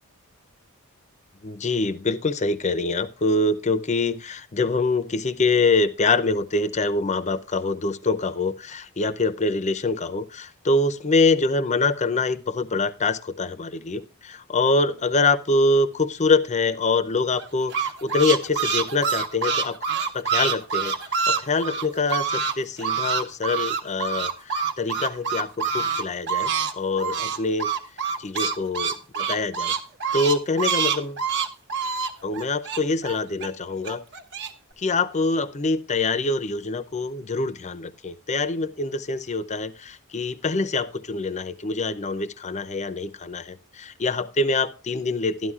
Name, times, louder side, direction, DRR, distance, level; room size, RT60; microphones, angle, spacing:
voice 1, 1.4-19.8 20.1-21.0 21.3-27.7 28.2-29.7 30.1-31.2 32.2-34.0 34.8-45.5, left 3 dB, 35° left, 13 dB, 0.6 m, -25 dB
sound 1, 17.4-22.5 22.8-26.7 27.0-33.5 33.8-34.5, right 6 dB, 55° right, 1.1 m, -26 dB
12.5 x 11.0 x 2.4 m, 0.35 s
head